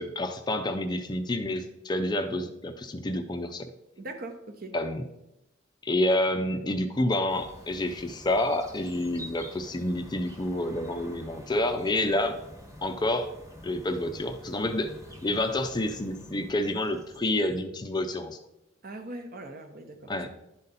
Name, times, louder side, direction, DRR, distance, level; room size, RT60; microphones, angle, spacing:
voice 1, 0.0-3.7 4.7-5.0 5.8-12.4 12.8-13.3 13.6-14.9 15.2-18.4 20.1-20.3, left 1 dB, 20° left, 7 dB, 0.5 m, -28 dB
voice 2, 4.0-4.7 18.8-20.3, right 2 dB, 50° right, 6 dB, 0.9 m, -41 dB
sound 1, 7.3-17.6, left 1 dB, 15° right, 1.4 m, -47 dB
11.0 x 4.0 x 4.0 m, 0.90 s
head